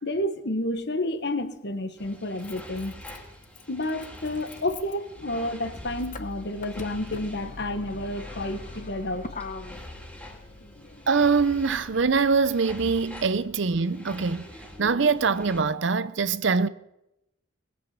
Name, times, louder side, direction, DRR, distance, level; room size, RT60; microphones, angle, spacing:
voice 1, 0.0-3.0 3.7-9.3, left 1 dB, 55° left, 1.3 m, -30 dB
Motor vehicle (road), 0.8-0.9 2.0-13.2, left 3 dB, 40° left, 0.9 m, -43 dB
sound 1, 2.0-15.6, left 1 dB, 5° left, 2.3 m, -45 dB
voice 2, 11.1-14.4 14.8-16.7, right 4 dB, 65° right, 0.6 m, -23 dB
20.5 x 8.2 x 7.4 m
head